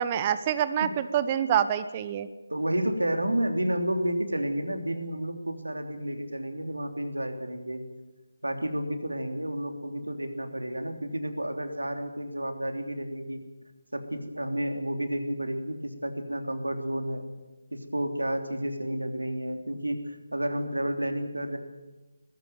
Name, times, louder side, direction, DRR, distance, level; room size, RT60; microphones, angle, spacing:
voice 1, 0.0-2.3, right 9 dB, 25° right, 13 dB, 1.0 m, -26 dB
voice 2, 2.5-7.8 8.4-13.4 13.9-17.3 17.7-21.6, right 1 dB, 85° right, 6 dB, 3.2 m, -31 dB
21.0 x 14.5 x 9.2 m, 1.1 s
figure-of-eight pair, 155°, 0 cm